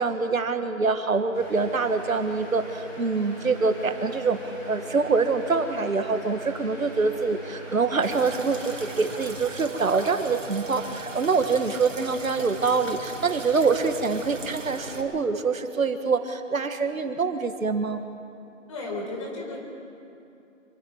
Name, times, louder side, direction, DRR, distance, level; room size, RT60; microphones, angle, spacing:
voice 1, 0.0-4.4 4.7-18.0, right 4 dB, 90° right, 8 dB, 1.8 m, -25 dB
sound 1, 1.3-9.3, equal, 5° left, 1.5 m, -42 dB
sound 2, 8.0-15.0, right 3 dB, 70° right, 3.5 m, -38 dB
voice 2, 18.7-19.6, left 2 dB, 25° left, -1 dB, 4.1 m, -33 dB
26.5 x 23.0 x 4.8 m, 2.7 s
hypercardioid pair, 170°, 40 cm